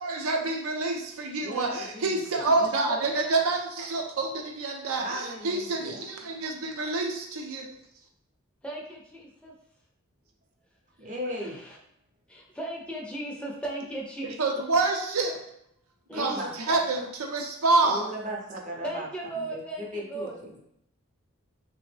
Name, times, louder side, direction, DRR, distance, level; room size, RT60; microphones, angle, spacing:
voice 1, 0.0-7.7 14.2-15.4 16.1-18.1, right 3 dB, 80° right, 2 dB, 0.6 m, -27 dB
voice 2, 1.4-2.5 5.0-6.0 11.0-11.6 16.1-16.8 17.8-19.1 19.4-20.6, equal, 35° right, -2 dB, 0.6 m, -37 dB
voice 3, 8.6-9.5 11.3-11.8 12.3-14.6 16.1-16.4 18.8-20.5, right 1 dB, 5° left, -2 dB, 0.4 m, -37 dB
3.4 x 2.0 x 3.2 m, 0.74 s
head